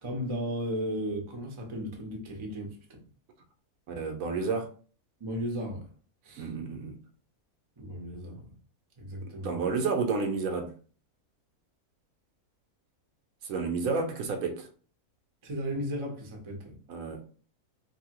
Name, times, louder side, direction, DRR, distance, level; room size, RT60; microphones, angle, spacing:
voice 1, 0.0-3.0 5.2-5.9 6.2-6.5 7.8-8.5 9.0-9.5 15.4-16.8, equal, 35° right, 0.4 m, -35 dB
voice 2, 3.9-4.7 6.4-6.9 9.2-10.7 13.4-14.7 16.9-17.2, right 4 dB, 75° right, 1.0 m, -31 dB
2.7 x 2.6 x 2.8 m
omnidirectional pair, 1.6 m